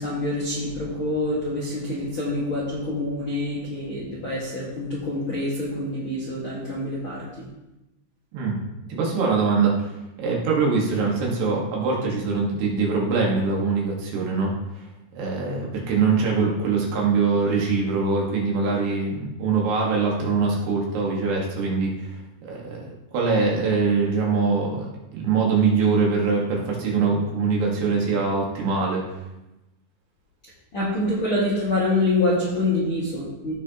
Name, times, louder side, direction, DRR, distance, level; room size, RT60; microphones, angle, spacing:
voice 1, 0.0-7.5 30.7-33.5, left 2 dB, 65° left, -7 dB, 1.3 m, -26 dB
voice 2, 8.9-9.9 10.2-14.5 15.2-22.1 22.4-29.0, right 4 dB, 65° right, -2 dB, 3.4 m, -23 dB
15.5 x 6.2 x 2.9 m, 0.97 s
omnidirectional pair, 5.5 m